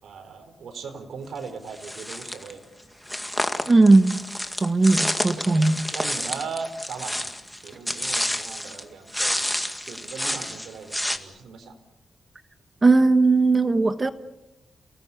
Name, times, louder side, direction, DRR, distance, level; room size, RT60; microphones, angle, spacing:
voice 1, 0.0-2.6 5.5-7.4 7.6-9.5 9.9-11.7, right 5 dB, 90° right, 4.3 m, -38 dB
sound 1, 1.8-2.5 3.1-8.8 9.1-11.2, equal, 5° left, 2.0 m, -29 dB
voice 2, 3.7-4.2 4.6-5.9 12.8-14.1, right 3 dB, 30° right, 1.2 m, -18 dB
29.5 x 19.0 x 8.4 m
wide cardioid pair, 120°, 0 cm